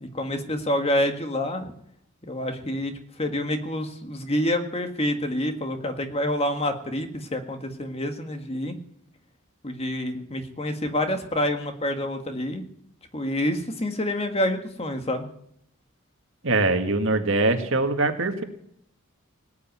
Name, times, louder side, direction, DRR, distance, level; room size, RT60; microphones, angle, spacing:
voice 1, 0.0-1.7 2.2-8.8 9.6-12.6 13.1-15.2, left 1 dB, 30° left, 6 dB, 1.7 m, -27 dB
voice 2, 16.4-18.4, right 2 dB, 65° right, 6 dB, 1.9 m, -22 dB
18.5 x 8.2 x 9.4 m, 0.71 s
head